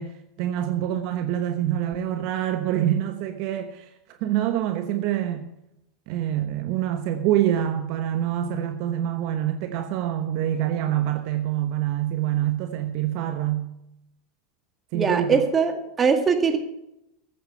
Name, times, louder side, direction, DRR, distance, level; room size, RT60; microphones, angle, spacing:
voice 1, 0.0-5.5 6.1-13.7 14.9-15.4, right 11 dB, 60° right, 1.0 m, -26 dB
voice 2, 14.9-15.7 16.0-16.6, right 5 dB, 25° right, 2.0 m, -21 dB
14.0 x 8.0 x 5.8 m
hypercardioid pair, 100°, 0 cm